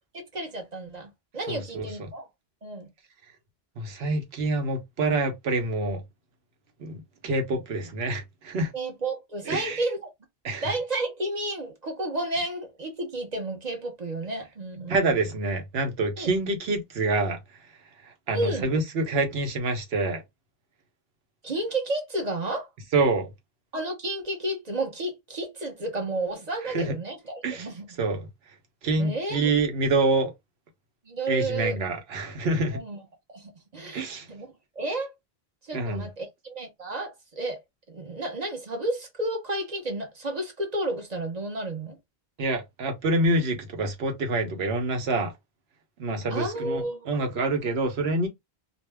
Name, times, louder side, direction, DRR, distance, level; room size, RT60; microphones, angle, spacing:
voice 1, 0.1-2.2 2.6-2.9 8.7-10.1 10.6-15.2 16.2-16.3 18.3-18.7 21.4-22.7 23.7-28.0 29.0-29.5 31.1-31.8 32.7-33.0 33.3-35.1 35.6-37.6 37.9-42.0 46.3-47.2, right 2 dB, 45° right, 0.8 m, -32 dB
voice 2, 1.5-1.9 3.8-6.0 6.8-8.7 9.5-9.8 10.4-10.6 14.9-17.4 18.3-20.2 22.9-23.3 26.7-26.9 27.4-27.7 28.0-28.2 28.8-30.3 31.3-32.8 33.9-34.2 35.7-36.1 42.4-45.3 46.0-48.3, right 2 dB, 75° right, 1.0 m, -26 dB
2.5 x 2.1 x 3.3 m
omnidirectional pair, 1.1 m